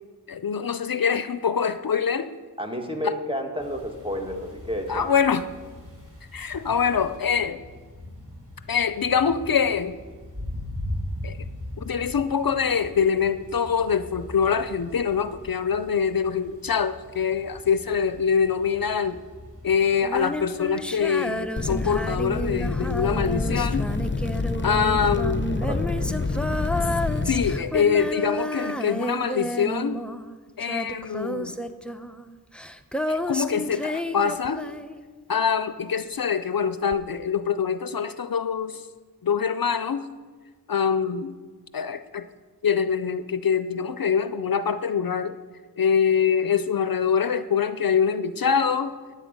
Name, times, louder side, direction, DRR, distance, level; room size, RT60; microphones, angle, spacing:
voice 1, 0.3-2.3 3.0-3.1 4.9-5.4 6.3-7.6 8.7-10.0 11.2-11.4 11.8-19.2 19.6-23.9 24.6-25.4 27.3-30.0 30.6-31.5 33.1-34.7 35.3-38.9 39.2-40.1 40.7-41.3 41.7-42.3 42.6-45.4 45.8-49.0, left 6 dB, 65° left, 12 dB, 0.5 m, -24 dB
voice 2, 2.6-5.1 25.6-25.9, equal, 15° right, 3 dB, 1.7 m, -31 dB
sound 1, 3.6-21.4, left 1 dB, 40° right, 4.4 m, -40 dB
Female singing, 20.0-35.4 36.9-37.0, equal, 5° left, 0.6 m, -31 dB
sound 2, 21.6-27.6, left 3 dB, 30° left, 0.8 m, -27 dB
14.0 x 9.5 x 5.3 m, 1.5 s
wide cardioid pair, 40°, 38 cm